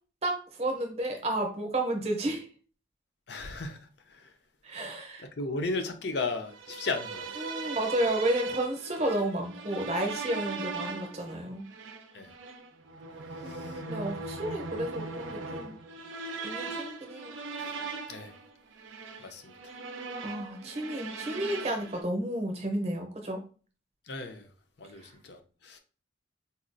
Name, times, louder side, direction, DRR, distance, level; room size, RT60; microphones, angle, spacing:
voice 1, 0.2-2.5 4.6-5.3 7.4-11.6 13.4-15.8 16.4-17.4 20.2-23.4 25.0-25.1, right 1 dB, 30° right, 0.7 m, -32 dB
voice 2, 3.3-4.3 4.7-4.9 5.2-7.5 12.1-12.3 13.3-13.8 17.6-17.7 18.1-18.3 19.2-19.8 24.1-24.5 24.8-25.8, left 3 dB, 60° left, 0.5 m, -36 dB
sound 1, 6.5-22.0, right 3 dB, 80° right, 0.5 m, -39 dB
4.1 x 2.3 x 2.5 m
head